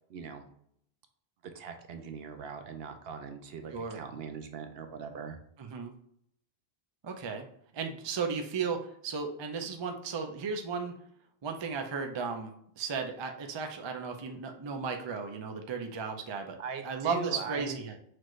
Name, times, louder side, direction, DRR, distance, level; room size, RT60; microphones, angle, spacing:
voice 1, 0.1-0.5 1.4-5.4 16.6-17.8, right 6 dB, 70° right, 6 dB, 0.8 m, -41 dB
voice 2, 5.6-5.9 7.0-7.4 7.7-10.9 11.4-16.6 16.8-17.9, right 5 dB, 40° right, 5 dB, 0.4 m, -35 dB
6.0 x 2.5 x 3.1 m, 0.68 s
omnidirectional pair, 1.1 m